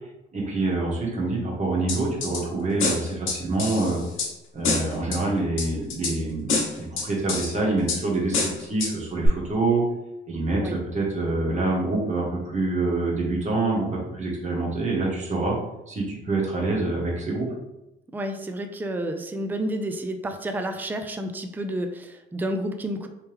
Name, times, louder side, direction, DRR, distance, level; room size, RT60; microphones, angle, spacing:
voice 1, 0.3-4.0 4.5-9.8 10.3-15.5 15.9-17.5, right 2 dB, 35° right, -3 dB, 1.4 m, -26 dB
sound 1, 1.9-2.4 2.8-4.3 4.6-5.2 5.6-6.1 6.5-7.5 7.9-8.0 8.3-8.9 9.2-9.3, left 4 dB, 85° left, 1.1 m, -26 dB
voice 2, 18.1-23.1, right 1 dB, 10° right, 6 dB, 0.4 m, -30 dB
3.1 x 3.1 x 3.4 m, 0.90 s
cardioid pair, 90°, 20 cm